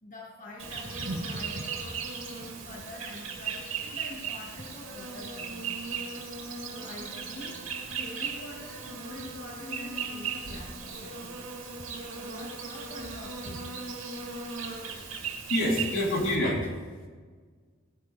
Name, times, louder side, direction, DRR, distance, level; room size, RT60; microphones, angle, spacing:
voice 1, 0.0-6.0 6.7-11.5 12.1-13.9, left 1 dB, 40° left, -3 dB, 1.8 m, -46 dB
Insect, 0.6-16.3, right 5 dB, 90° right, 2.4 m, -37 dB
voice 2, 15.0-16.7, left 1 dB, 80° left, -3 dB, 3.3 m, -28 dB
17.5 x 9.8 x 3.3 m, 1.5 s
head